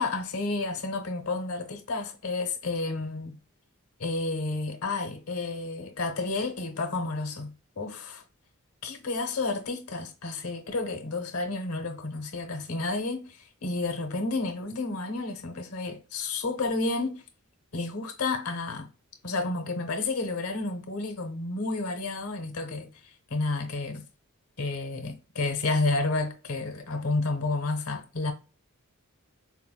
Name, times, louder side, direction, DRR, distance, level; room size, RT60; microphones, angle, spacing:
voice 1, 0.0-3.4 4.0-8.2 8.8-17.2 17.7-18.9 19.2-22.9 23.3-24.0 24.6-28.3, left 3 dB, 85° left, 0.8 m, -31 dB
4.4 x 2.0 x 2.2 m
head